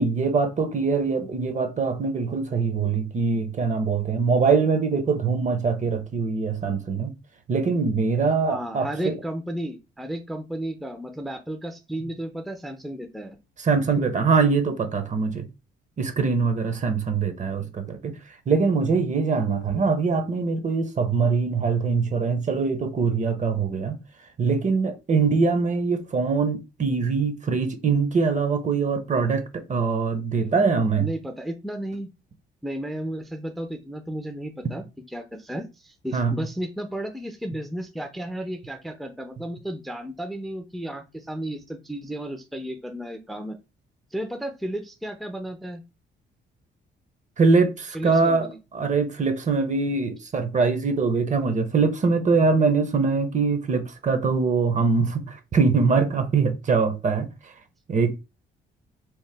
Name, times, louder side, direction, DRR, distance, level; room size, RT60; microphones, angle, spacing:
voice 1, 0.0-7.1 7.5-9.1 13.6-15.5 16.0-18.1 18.5-23.9 24.4-31.1 36.1-36.3 47.4-48.5 48.7-57.3 57.9-58.1, right 4 dB, 40° right, 0.7 m, -23 dB
voice 2, 8.5-13.4 14.0-14.1 30.3-30.7 31.0-32.1 32.6-43.6 44.1-45.8 47.9-48.6, right 1 dB, ahead, 0.4 m, -33 dB
2.9 x 2.0 x 3.3 m
cardioid pair, 90°, 20 cm